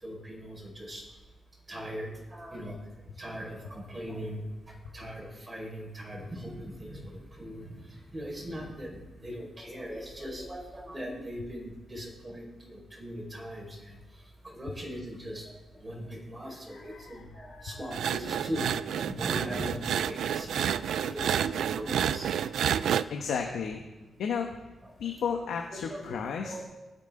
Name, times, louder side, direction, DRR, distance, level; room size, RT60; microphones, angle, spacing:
voice 1, 0.0-1.0 1.7-2.8 3.2-4.4 4.9-7.7 8.1-13.9 14.5-15.5 15.8-20.6 21.0-22.3 25.9-26.6, equal, 20° right, -1 dB, 5.1 m, -40 dB
voice 2, 16.5-18.0 23.1-23.8 24.2-24.5 25.0-26.5, left 6 dB, 85° left, 2 dB, 1.1 m, -34 dB
sound 1, 17.9-23.0, right 9 dB, 85° right, 0.4 m, -29 dB
20.0 x 8.1 x 3.9 m, 1.1 s
cardioid pair, 115°, 0 cm